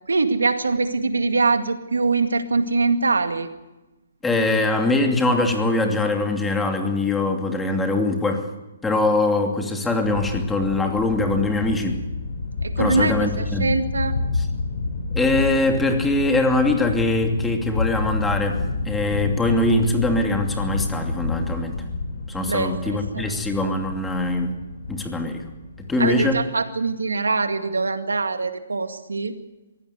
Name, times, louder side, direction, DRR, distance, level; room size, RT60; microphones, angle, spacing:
voice 1, 0.1-3.5 12.6-14.2 22.4-23.4 26.0-29.4, right 3 dB, 85° right, 8 dB, 2.0 m, -23 dB
voice 2, 4.2-8.4 8.8-12.0 12.8-13.7 15.1-21.8 22.3-24.5 24.9-25.4 25.9-26.4, left 2 dB, 10° left, 4 dB, 2.7 m, -22 dB
sound 1, 10.0-26.4, left 3 dB, 65° left, 5.4 m, -29 dB
22.5 x 16.5 x 8.0 m, 1.1 s
hypercardioid pair, 140°, 0 cm